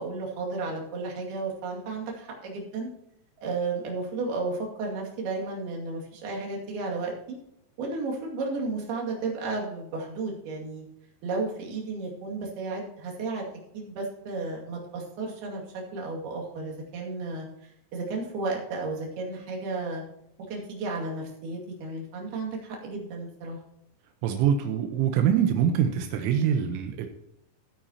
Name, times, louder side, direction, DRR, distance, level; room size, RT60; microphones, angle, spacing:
voice 1, 0.0-2.9 3.4-7.4 7.8-10.9 11.2-13.5 13.7-15.6 15.9-17.5 17.9-20.0 20.5-23.6, right 3 dB, 60° right, -2 dB, 4.1 m, -33 dB
voice 2, 24.2-27.1, right 8 dB, 85° right, 5 dB, 3.4 m, -24 dB
16.0 x 8.8 x 2.9 m, 0.79 s
omnidirectional pair, 5.5 m